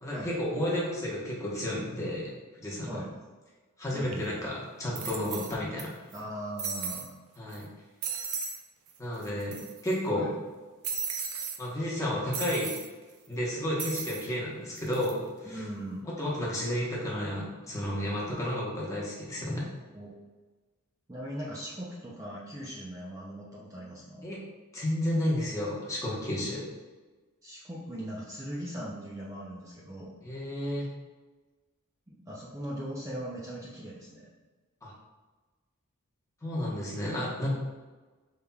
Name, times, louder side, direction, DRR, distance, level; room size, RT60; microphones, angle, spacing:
voice 1, 0.0-2.3 2.6-3.0 3.8-5.9 7.4-7.7 9.0-9.6 9.8-10.3 11.6-12.8 13.3-15.6 16.0-19.7 24.2-24.4 24.7-26.6 30.2-30.9 34.8-34.9 36.4-37.6, left 1 dB, 15° left, -6 dB, 1.0 m, -32 dB
voice 2, 3.9-4.6 6.1-7.1 9.5-9.6 10.1-10.3 15.4-16.1 19.9-20.2 21.1-24.3 27.4-30.1 32.1-34.3, right 1 dB, 15° right, -6 dB, 0.5 m, -40 dB
sound 1, 4.1-4.2 4.9-5.8 6.1-6.2 6.6-7.1 7.5-7.6 8.0-8.6 8.9-9.0 9.2-9.9 10.8-11.6 12.3-12.9 13.8-14.3 14.8-15.1, right 6 dB, 90° right, 0.6 m, -35 dB
5.4 x 3.4 x 2.3 m, 1.3 s
head